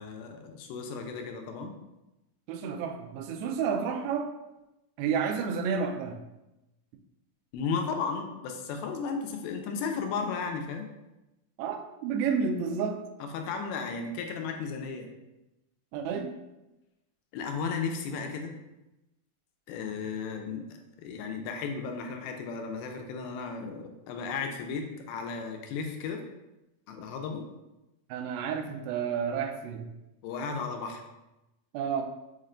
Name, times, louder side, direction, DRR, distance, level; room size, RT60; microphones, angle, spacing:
voice 1, 0.0-1.7 7.5-10.9 13.2-15.1 17.3-18.5 19.7-20.7 21.0-26.2 26.9-27.4 30.2-31.0, left 5 dB, 85° left, 4 dB, 2.4 m, -34 dB
voice 2, 2.5-4.3 5.0-6.2 11.6-13.0 15.9-16.3 28.1-29.9 31.7-32.0, right 6 dB, 90° right, 5 dB, 2.4 m, -30 dB
6.4 x 2.2 x 3.7 m, 0.97 s
omnidirectional pair, 4.3 m